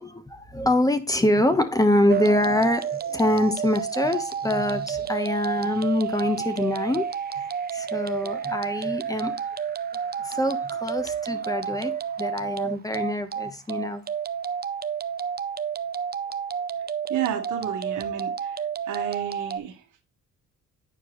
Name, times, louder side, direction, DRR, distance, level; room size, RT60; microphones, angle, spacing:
voice 1, 0.0-7.1 7.3-7.4 7.7-9.3 10.2-11.9 12.2-14.0, left 1 dB, 10° left, 1.0 m, -24 dB
sound 1, 2.1-19.6, right 7 dB, 30° right, 0.5 m, -30 dB
voice 2, 17.1-19.8, right 10 dB, 80° right, 1.5 m, -32 dB
9.1 x 4.6 x 3.1 m
cardioid pair, 90°, 30 cm